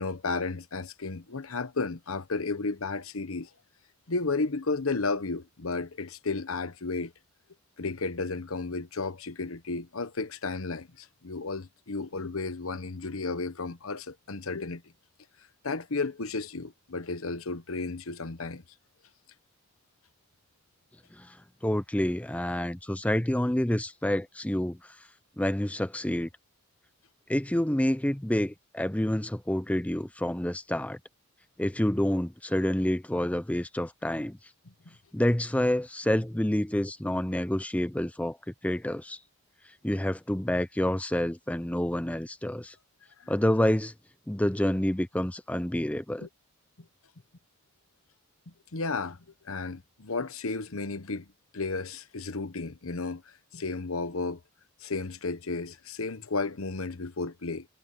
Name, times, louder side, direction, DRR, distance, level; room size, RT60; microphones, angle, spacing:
voice 1, 0.0-3.5 4.1-7.1 7.8-14.8 15.6-18.6 43.2-43.3 46.2-46.3 48.7-49.2 49.4-51.3 51.5-53.2 53.5-54.4 54.8-57.7, left 3 dB, 85° left, 1.1 m, -33 dB
voice 2, 21.6-25.0 25.4-26.3 27.3-31.0 31.6-34.4 35.1-38.4 38.6-39.2 39.8-42.7 43.3-43.9 44.3-46.3, left 1 dB, 5° left, 0.5 m, -28 dB
head